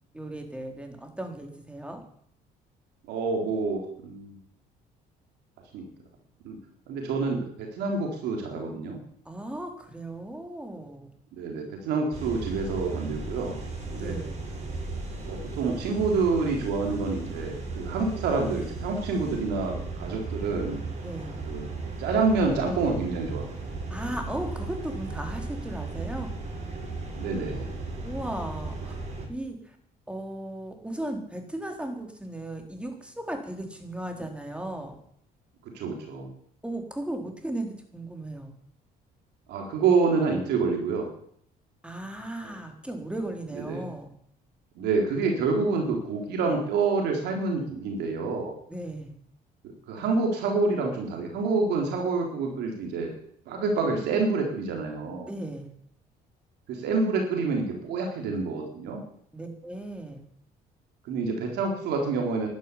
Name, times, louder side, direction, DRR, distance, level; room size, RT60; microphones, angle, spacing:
voice 1, 0.1-2.0 9.3-11.1 13.9-14.4 21.0-21.4 23.9-26.3 28.0-29.0 29.3-29.8 30.1-35.0 36.6-38.5 41.8-44.1 48.7-49.1 55.3-55.7 59.3-60.2, right 1 dB, 5° right, 4 dB, 4.0 m, -36 dB
voice 2, 3.1-4.4 5.7-5.9 6.4-6.6 6.9-9.0 11.3-13.6 13.9-14.2 15.2-20.8 21.4-21.6 22.0-23.5 27.1-27.7 35.7-36.3 39.5-41.1 43.5-43.8 44.8-48.5 49.6-53.1 53.5-55.3 56.7-59.0 61.1-62.5, right 4 dB, 80° right, 1 dB, 3.7 m, -27 dB
sound 1, 12.1-29.3, right 3 dB, 40° right, 7.7 m, -36 dB
12.0 x 11.5 x 9.9 m, 0.67 s
cardioid pair, 110°, 17 cm